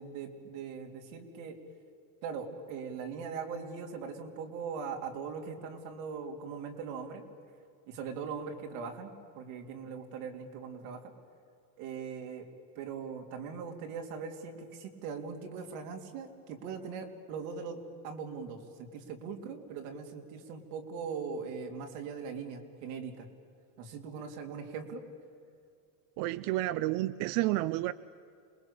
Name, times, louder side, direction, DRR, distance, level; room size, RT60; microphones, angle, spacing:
voice 1, 0.0-1.6 2.2-7.2 7.9-11.1 11.8-12.5 12.8-17.8 18.0-23.3 23.8-25.0, right 5 dB, 85° right, 4 dB, 3.4 m, -40 dB
voice 2, 26.2-27.9, right 17 dB, 55° right, 16 dB, 0.6 m, -30 dB
27.5 x 21.5 x 8.5 m, 2.4 s
cardioid pair, 180°, 44 cm